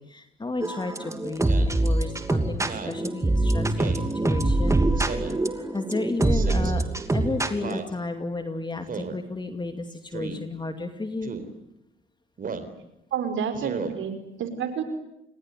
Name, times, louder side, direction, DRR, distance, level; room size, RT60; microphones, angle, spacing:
voice 1, 0.0-4.8 5.5-6.8 7.1-11.3 13.9-14.0, left 3 dB, 20° left, 7 dB, 2.5 m, -33 dB
sound 1, 0.6-7.8, right 2 dB, 15° right, 2.8 m, -24 dB
Speech synthesizer, 1.4-1.8 2.6-3.0 3.8-4.1 5.0-5.4 6.3-6.7 7.6-7.9 8.9-9.2 10.1-10.4 11.2-11.5 12.4-12.7 13.5-13.9, right 5 dB, 45° right, 3.9 m, -35 dB
voice 2, 13.1-14.8, right 7 dB, 75° right, 8 dB, 5.2 m, -29 dB
28.5 x 22.0 x 9.3 m, 0.85 s
cardioid pair, 90°, 20 cm